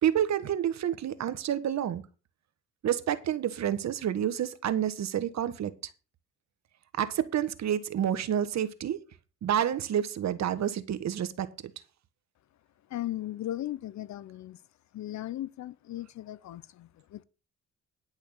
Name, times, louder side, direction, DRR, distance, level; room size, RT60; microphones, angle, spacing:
voice 1, 0.0-2.0 2.8-5.7 7.0-9.0 9.4-11.5, right 10 dB, 65° right, 1.4 m, -29 dB
voice 2, 12.9-14.6 14.9-17.2, left 14 dB, 70° left, 0.8 m, -37 dB
10.5 x 6.4 x 6.4 m
cardioid pair, 90°, 30 cm